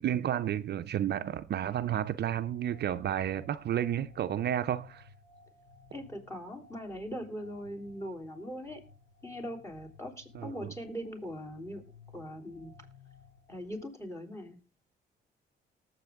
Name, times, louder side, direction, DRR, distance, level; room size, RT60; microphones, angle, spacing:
voice 1, 0.0-5.1 10.3-10.7, right 10 dB, 55° right, 0.6 m, -31 dB
sound 1, 1.9-13.8, left 4 dB, 80° left, 3.1 m, -57 dB
voice 2, 5.9-8.8 9.2-11.8 12.1-12.7 13.5-14.6, equal, 15° left, 3.4 m, -41 dB
19.0 x 7.6 x 3.6 m
cardioid pair, 90°, 20 cm